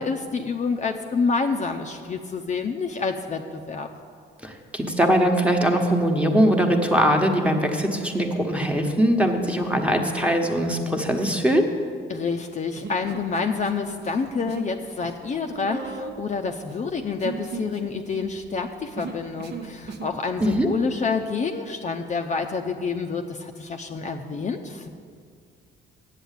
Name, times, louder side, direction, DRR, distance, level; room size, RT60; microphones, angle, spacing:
voice 1, 0.0-3.9 12.1-24.9, left 4 dB, 35° left, 4 dB, 0.6 m, -28 dB
voice 2, 4.4-11.6 20.6-20.7, equal, 5° right, 3 dB, 1.2 m, -21 dB
Human voice, 12.8-13.7 14.0-14.7 15.0-20.2, right 5 dB, 55° right, 1.0 m, -37 dB
8.2 x 7.9 x 8.2 m, 2.2 s
cardioid pair, 90°, 20 cm